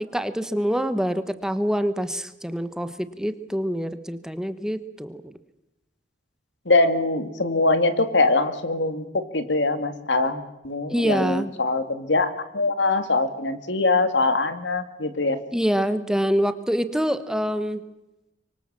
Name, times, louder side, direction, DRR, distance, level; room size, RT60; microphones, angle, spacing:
voice 1, 0.1-5.3 10.9-11.5 15.5-17.8, equal, 5° right, 11 dB, 1.1 m, -25 dB
voice 2, 6.7-15.4, left 3 dB, 80° left, 9 dB, 2.3 m, -23 dB
25.0 x 24.0 x 7.5 m, 0.96 s
head